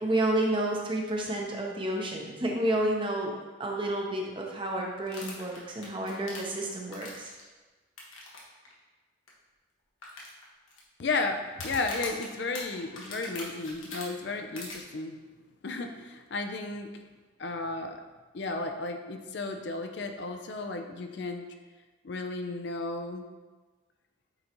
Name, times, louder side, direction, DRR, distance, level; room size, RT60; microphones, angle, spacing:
voice 1, 0.0-3.3 3.6-7.3, right 1 dB, 25° right, 0 dB, 0.8 m, -30 dB
sound 1, 5.1-7.4 8.0-8.4 8.7-8.8 9.3-9.4 10.0-10.8 11.5-14.0 14.6-14.8, left 3 dB, 90° left, 1.4 m, -41 dB
voice 2, 11.0-15.2 15.6-16.9 17.4-18.0 18.3-21.5 22.0-23.3, left 3 dB, 60° left, 5 dB, 0.5 m, -33 dB
8.8 x 3.9 x 3.0 m, 1.3 s
head